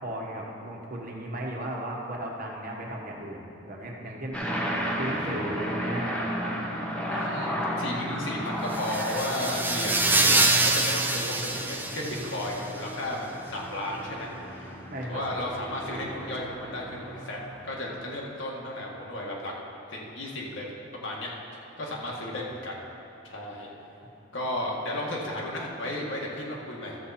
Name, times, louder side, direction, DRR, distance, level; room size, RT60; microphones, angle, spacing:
voice 1, 0.0-4.4 5.0-6.6 14.9-15.2, right 1 dB, 45° right, -1 dB, 1.4 m, -35 dB
sound 1, 4.3-18.0, equal, 5° left, 1.1 m, -34 dB
voice 2, 7.1-14.8 15.1-17.4 17.6-19.5 19.9-21.3 21.8-22.8 23.2-23.7 24.3-27.0, left 1 dB, 65° left, -3 dB, 1.9 m, -34 dB
sound 2, 8.7-12.6, right 2 dB, 10° right, 0.5 m, -25 dB
13.0 x 7.5 x 4.3 m, 2.8 s
head